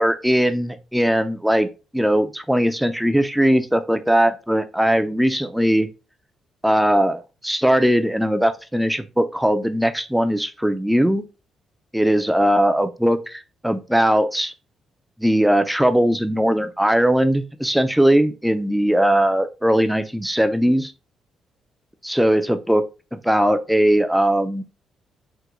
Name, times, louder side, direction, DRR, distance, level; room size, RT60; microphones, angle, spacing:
voice 1, 0.0-1.7 1.9-5.9 6.6-11.2 11.9-14.5 15.2-20.9 22.0-22.8 23.1-24.6, equal, 5° right, 9 dB, 0.4 m, -19 dB
3.6 x 2.2 x 2.9 m, 0.30 s
cardioid pair, 90°, 0 cm